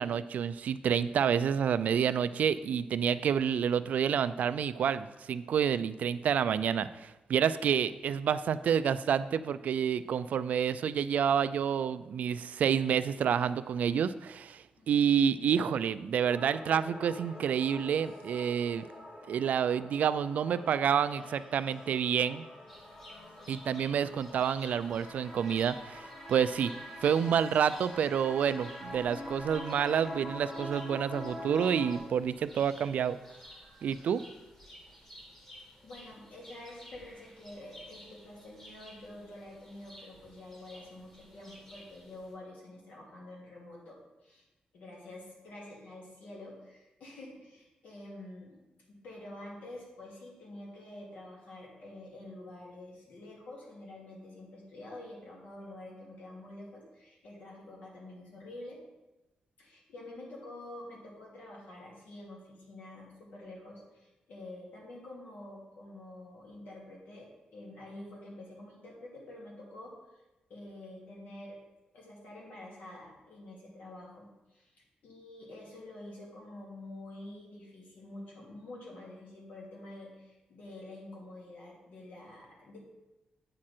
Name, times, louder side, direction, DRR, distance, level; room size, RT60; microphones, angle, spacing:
voice 1, 0.0-18.9 19.3-22.4 23.5-26.7 27.0-33.2 33.8-34.2, right 8 dB, 70° right, 14 dB, 0.3 m, -29 dB
sound 1, 16.2-32.0, left 1 dB, 60° left, 2.9 m, -45 dB
sound 2, 22.7-42.3, left 1 dB, 20° left, 1.7 m, -54 dB
voice 2, 34.9-35.2 35.8-44.0 44.2-44.5 44.7-48.6 48.9-58.8 59.6-69.9 70.5-71.6 71.9-82.8, left 1 dB, 75° left, -3 dB, 2.6 m, -48 dB
8.6 x 6.2 x 4.4 m, 1.0 s
wide cardioid pair, 165°, 3 cm